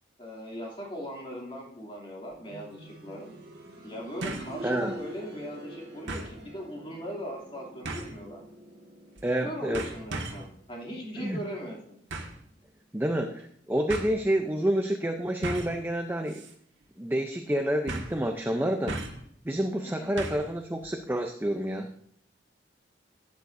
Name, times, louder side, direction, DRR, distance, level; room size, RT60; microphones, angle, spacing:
voice 1, 0.2-3.3 3.8-8.4 9.4-11.8 19.8-20.2, equal, 30° left, -2 dB, 2.7 m, -39 dB
sound 1, 2.3-2.4 4.2-4.6 5.0-5.1 6.1-6.4 7.8-8.2 9.2-9.4 9.7-10.5 12.1-12.4 13.4-13.5 13.9-14.1 15.4-15.8 16.3-16.5 16.8-16.9 17.9-18.2 18.9-19.3 20.2-20.5 20.8-20.9, right 2 dB, 85° right, 1.7 m, -36 dB
sound 2, 2.5-13.2 13.6-13.7 14.6-14.7, equal, 55° right, 1.6 m, -46 dB
voice 2, 4.6-4.9 9.2-9.8 11.2-11.4 12.9-16.4 17.0-19.0 19.5-21.9, right 1 dB, 10° right, 5 dB, 0.5 m, -28 dB
13.0 x 9.2 x 2.6 m, 0.67 s
head